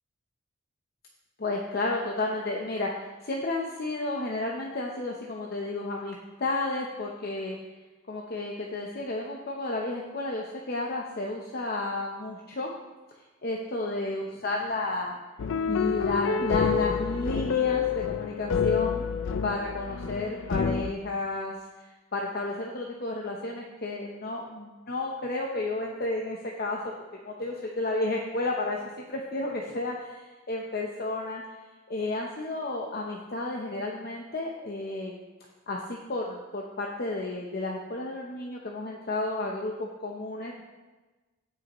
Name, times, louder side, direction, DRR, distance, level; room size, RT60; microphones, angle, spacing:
voice 1, 1.4-7.6 8.1-12.7 13.4-15.1 15.7-19.0 19.4-21.5 22.1-26.8 27.2-28.8 29.1-31.4 31.9-35.2 35.7-40.6, left 2 dB, 50° left, -1 dB, 0.8 m, -32 dB
sound 1, 15.4-20.9, left 7 dB, 70° left, 0.4 m, -28 dB
16.5 x 5.6 x 3.0 m, 1.2 s
head